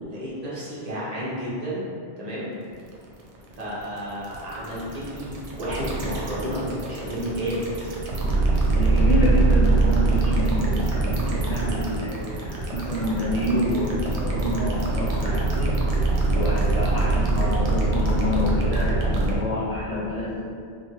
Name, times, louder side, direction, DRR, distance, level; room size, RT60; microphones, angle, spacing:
voice 1, 0.1-1.8 2.2-2.5 3.5-7.6 15.1-15.4, equal, 40° right, -8 dB, 0.8 m, -31 dB
sound 1, 2.7-19.4, right 3 dB, 85° right, 0.9 m, -23 dB
voice 2, 8.7-15.8 16.3-20.4, left 1 dB, 50° left, -9 dB, 0.5 m, -28 dB
3.1 x 2.3 x 2.7 m, 2.3 s
omnidirectional pair, 1.1 m